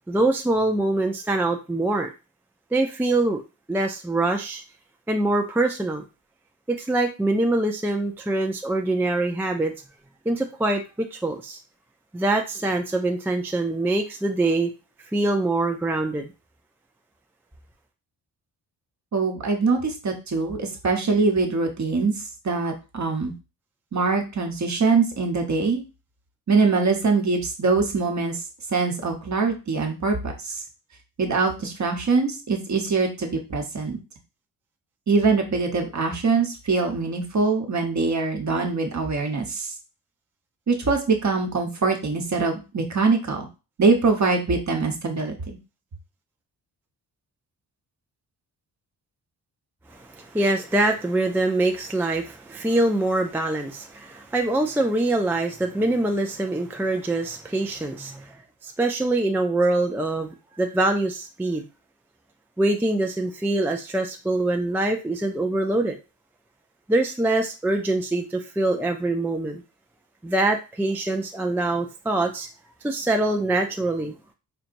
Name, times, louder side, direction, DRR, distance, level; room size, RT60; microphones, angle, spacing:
voice 1, 0.1-2.1 2.7-3.4 3.7-4.6 5.1-6.0 6.7-9.7 10.3-11.6 12.1-14.7 15.1-16.3 49.9-58.4 58.6-61.6 62.6-66.0 66.9-69.6 70.2-72.5 72.8-74.1, right 2 dB, 5° right, 4 dB, 0.3 m, -24 dB
voice 2, 19.1-22.1 22.4-23.3 23.9-25.8 26.5-28.4 28.7-30.6 31.2-34.0 35.1-39.7 40.7-43.5 43.8-45.3, right 4 dB, 45° right, 3 dB, 1.0 m, -23 dB
4.5 x 2.8 x 2.5 m, 0.30 s
cardioid pair, 95°, 41 cm